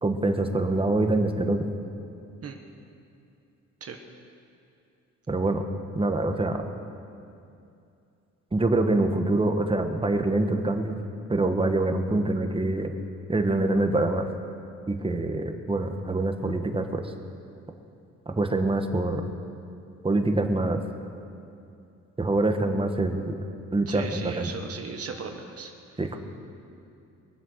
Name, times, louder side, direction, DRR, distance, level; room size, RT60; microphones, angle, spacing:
voice 1, 0.0-1.7 5.3-5.6 5.9-6.6 8.5-11.0 11.3-12.9 13.3-14.2 14.9-17.1 18.3-19.2 20.0-20.8 22.2-23.3 23.7-24.5 26.0-26.2, right 2 dB, 20° right, 5 dB, 1.3 m, -25 dB
voice 2, 23.9-26.0, right 5 dB, 50° right, 4 dB, 1.4 m, -37 dB
23.0 x 7.7 x 6.5 m, 2.6 s
cardioid pair, 90°, 30 cm